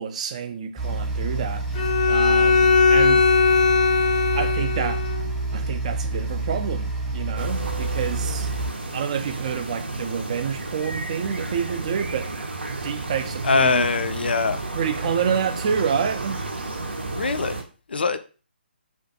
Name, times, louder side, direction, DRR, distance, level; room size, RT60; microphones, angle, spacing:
voice 1, 0.0-1.7 2.1-3.2 4.3-5.0 5.5-8.5 8.9-12.3 12.7-13.8 14.8-16.4, right 7 dB, 35° right, 0.3 m, -28 dB
sound 1, 0.8-8.7, right 2 dB, 15° right, 0.8 m, -28 dB
Bowed string instrument, 1.7-5.2, left 5 dB, 15° left, 0.5 m, -19 dB
sound 2, 7.4-17.6, right 2 dB, 75° right, 0.6 m, -32 dB
voice 2, 13.4-14.6 17.1-17.6 17.9-18.2, left 4 dB, 65° left, 0.3 m, -22 dB
2.5 x 2.2 x 2.6 m
figure-of-eight pair, 140°, 6 cm